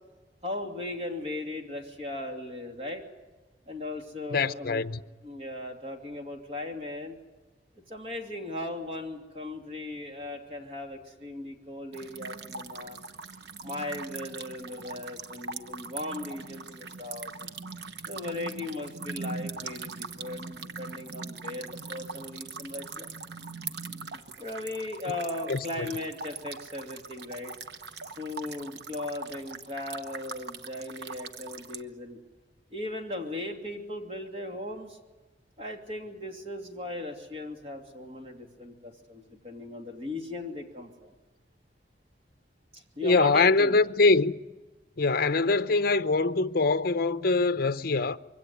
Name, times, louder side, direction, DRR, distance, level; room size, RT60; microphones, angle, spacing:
voice 1, 0.4-3.0 3.7-4.8 5.2-7.2 7.9-13.0 13.6-17.5 18.1-23.1 24.4-27.5 28.2-32.2 32.7-35.0 35.6-41.1 42.7-43.8, left 2 dB, 35° right, 2.8 m, -37 dB
voice 2, 4.3-5.0 25.5-25.9 43.0-44.3 45.0-48.2, left 3 dB, 55° left, 0.8 m, -23 dB
sound 1, 11.9-31.8, right 4 dB, 65° right, 1.1 m, -41 dB
23.0 x 17.0 x 9.5 m
head